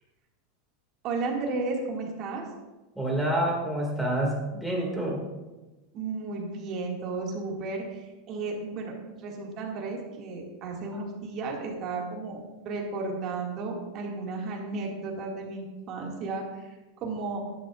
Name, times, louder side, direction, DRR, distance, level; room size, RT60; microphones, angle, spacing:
voice 1, 1.0-2.5 5.9-8.9 9.2-16.7 17.0-17.4, right 3 dB, 35° right, -1 dB, 2.2 m, -33 dB
voice 2, 3.0-5.2, right 1 dB, ahead, -3 dB, 2.3 m, -28 dB
13.5 x 10.5 x 2.5 m, 1.1 s
supercardioid pair, 160°, 0 cm